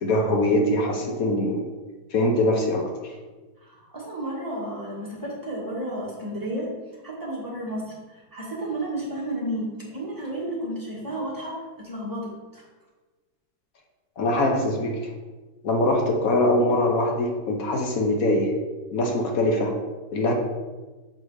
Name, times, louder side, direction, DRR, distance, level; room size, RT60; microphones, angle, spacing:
voice 1, 0.0-1.6 2.1-3.1 14.2-14.9 15.6-18.5 18.9-19.7 20.1-20.3, left 1 dB, 60° left, 1 dB, 1.1 m, -22 dB
voice 2, 3.6-6.7 7.0-12.6, right 1 dB, 10° right, -6 dB, 1.5 m, -32 dB
6.6 x 3.4 x 4.7 m, 1.3 s
omnidirectional pair, 2.0 m